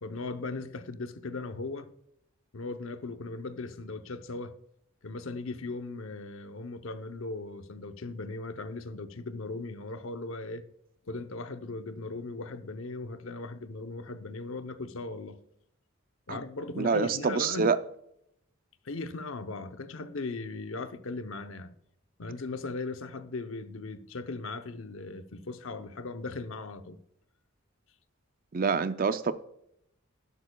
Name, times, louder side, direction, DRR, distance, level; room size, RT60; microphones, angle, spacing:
voice 1, 0.0-1.9 2.5-4.5 5.0-10.6 11.1-15.4 16.3-17.7 18.8-21.7 22.2-27.0, left 3 dB, 70° left, 0.7 m, -38 dB
voice 2, 16.8-17.8 28.5-29.3, right 5 dB, 40° right, 0.5 m, -26 dB
11.5 x 11.0 x 2.3 m
head